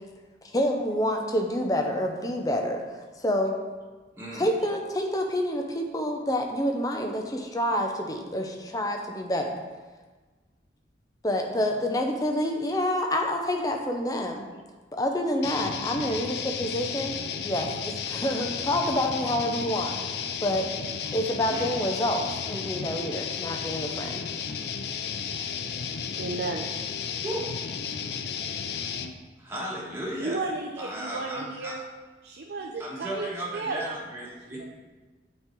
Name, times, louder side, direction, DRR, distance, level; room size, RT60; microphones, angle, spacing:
voice 1, 0.5-2.8 3.2-3.6 4.3-9.5 11.2-14.5 14.9-17.1 17.4-19.9 20.4-20.6 21.1-24.2, left 1 dB, 20° left, 3 dB, 0.7 m, -27 dB
voice 2, 4.1-4.5 11.6-11.8 16.1-16.2 21.5-21.7 27.2-27.5 29.4-30.4 30.8-31.7 32.8-34.7, right 1 dB, 15° right, -5 dB, 1.4 m, -35 dB
sound 1, 15.4-29.1, left 7 dB, 65° left, 0.4 m, -33 dB
voice 3, 26.2-26.7 30.2-31.8 32.2-33.3 33.5-33.8 34.6-34.7, right 3 dB, 65° right, 2 dB, 0.5 m, -33 dB
8.4 x 3.8 x 4.5 m, 1.3 s
head